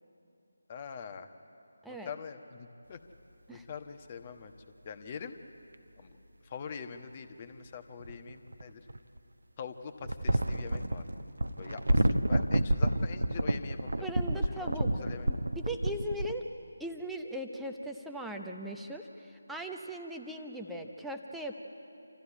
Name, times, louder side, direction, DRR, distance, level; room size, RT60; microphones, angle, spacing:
voice 1, 0.7-1.3 1.9-3.0 3.5-4.5 4.8-5.3 6.0-6.2 6.4-8.9 9.6-11.0 11.6-14.1 14.6-14.7 15.0-15.3, left 6 dB, 30° left, 8 dB, 1.2 m, -44 dB
sound 1, 5.7-5.8 8.0-9.2 10.0-16.3, right 1 dB, 70° right, 0.9 m, -29 dB
voice 2, 14.0-14.9 15.2-16.5 16.8-21.5, right 1 dB, ahead, 2 dB, 0.8 m, -39 dB
27.0 x 14.5 x 9.9 m, 2.8 s
figure-of-eight pair, 155°, 0 cm